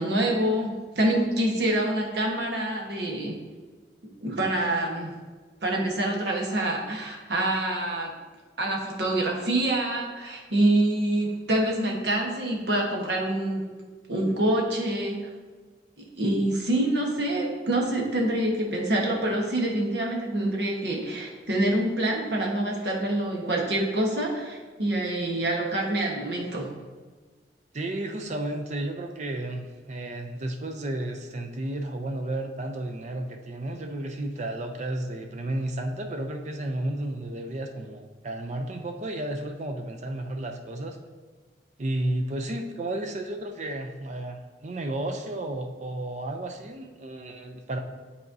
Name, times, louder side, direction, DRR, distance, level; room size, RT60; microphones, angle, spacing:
voice 1, 0.0-3.4 4.2-5.1 5.6-8.1 8.6-13.6 14.1-15.3 16.0-26.7, right 1 dB, 65° right, -1 dB, 1.2 m, -26 dB
voice 2, 27.7-41.0 41.8-47.8, right 1 dB, 40° right, 4 dB, 0.5 m, -32 dB
10.0 x 4.2 x 2.6 m, 1.4 s
head